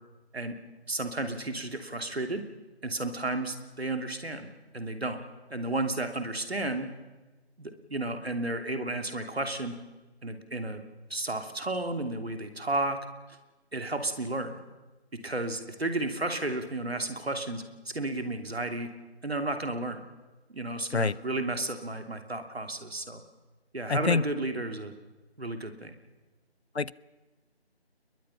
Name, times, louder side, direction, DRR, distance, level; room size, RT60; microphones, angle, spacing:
voice 1, 0.9-2.5 2.8-5.2 5.5-6.9 7.6-9.7 10.2-10.8 11.1-13.0 13.7-14.6 15.1-18.9 19.2-20.0 20.5-23.2 23.7-24.9 25.4-25.9, right 2 dB, 65° right, 6 dB, 3.0 m, -32 dB
voice 2, 23.9-24.2 26.8-26.9, left 4 dB, 75° left, 22 dB, 0.8 m, -25 dB
30.0 x 21.5 x 5.7 m, 1.2 s
figure-of-eight pair, 165°, 33 cm